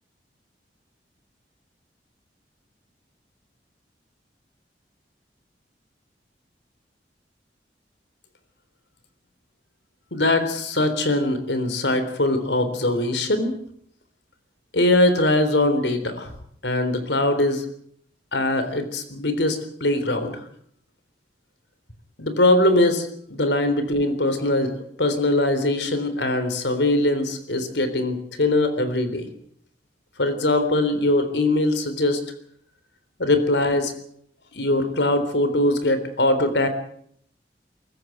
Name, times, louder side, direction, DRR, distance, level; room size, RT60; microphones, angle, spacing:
voice 1, 10.1-13.5 14.7-16.3 16.6-17.6 18.3-20.4 22.2-29.3 30.2-32.2 33.2-33.9 34.5-36.7, left 1 dB, 85° left, 10 dB, 3.7 m, -22 dB
23.5 x 14.0 x 9.3 m, 0.67 s
head